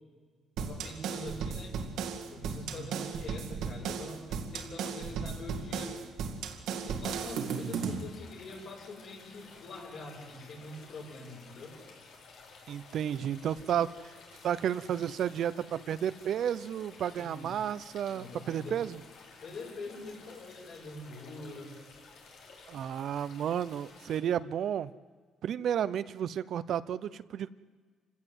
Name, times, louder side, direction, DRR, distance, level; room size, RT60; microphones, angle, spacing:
voice 1, 0.6-1.9 2.3-6.0 6.6-11.8 17.2-17.5 18.1-18.8 19.4-21.8, left 2 dB, 60° left, -1 dB, 7.5 m, -44 dB
sound 1, 0.6-8.1, right 6 dB, 85° right, 2.2 m, -36 dB
voice 2, 2.8-3.2 12.7-14.1 14.4-19.0 22.7-24.9 25.4-27.5, right 9 dB, 65° right, 15 dB, 0.7 m, -32 dB
sound 2, 7.2-24.2, left 4 dB, 80° left, 4.6 m, -54 dB
27.5 x 17.0 x 8.0 m, 1.5 s
cardioid pair, 120°, 0 cm